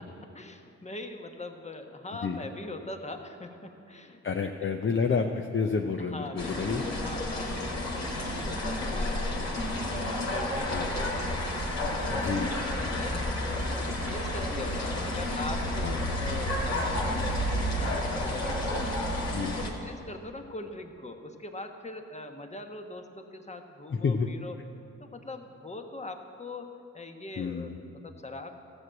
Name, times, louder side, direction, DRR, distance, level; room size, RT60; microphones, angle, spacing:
voice 1, 0.0-4.5 6.0-19.0 19.5-24.6 25.0-28.5, left 2 dB, 20° left, 5 dB, 1.3 m, -42 dB
voice 2, 4.2-6.8 10.7-10.9 12.1-12.5 15.8-16.1 19.3-19.6 24.0-24.3 27.4-27.7, left 5 dB, 40° left, 4 dB, 0.7 m, -29 dB
sound 1, 6.4-19.7, left 1 dB, 55° left, 2.2 m, -31 dB
13.5 x 6.3 x 7.9 m, 2.6 s
supercardioid pair, 55°, 32 cm